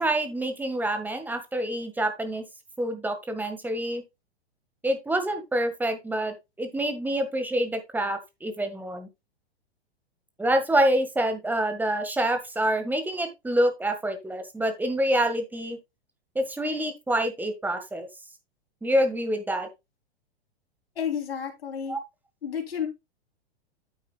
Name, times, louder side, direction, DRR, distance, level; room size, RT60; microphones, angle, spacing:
voice 1, 0.0-2.4 2.8-4.0 4.8-9.1 10.4-15.8 16.3-18.1 18.8-19.7 21.9-22.0, right 1 dB, 5° right, 8 dB, 1.6 m, -27 dB
voice 2, 20.9-22.0 22.4-22.9, left 8 dB, 65° left, 3 dB, 3.4 m, -31 dB
9.2 x 8.5 x 2.3 m, 0.22 s
figure-of-eight pair, 105°, 32 cm